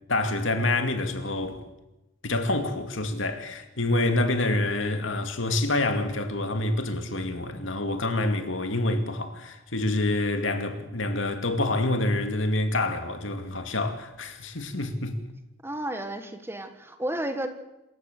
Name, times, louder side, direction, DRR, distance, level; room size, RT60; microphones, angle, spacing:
voice 1, 0.1-1.6 2.2-15.2, left 2 dB, 75° left, 2.4 m, -27 dB
voice 2, 15.6-17.5, right 1 dB, 10° right, 1.5 m, -32 dB
26.5 x 15.0 x 6.8 m
head